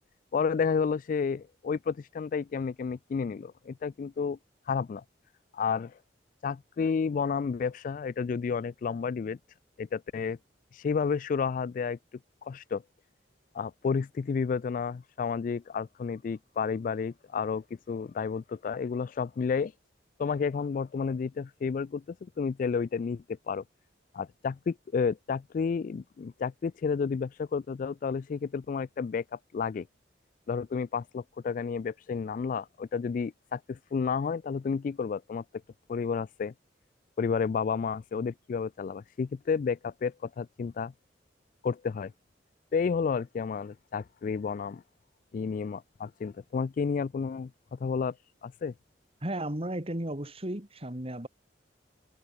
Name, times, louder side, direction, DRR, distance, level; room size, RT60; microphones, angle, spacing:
voice 1, 0.3-4.4 4.7-5.0 5.5-6.0 6.4-9.4 9.8-10.4 10.7-12.0 12.4-12.8 13.5-19.7 20.2-23.6 24.1-29.9 30.5-35.4 35.9-36.5 37.2-40.9 41.6-42.1 42.7-44.8 45.3-48.2 48.4-48.7, left 5 dB, 50° left, 0.3 m, -31 dB
voice 2, 49.2-51.3, right 1 dB, 35° right, 2.8 m, -34 dB
head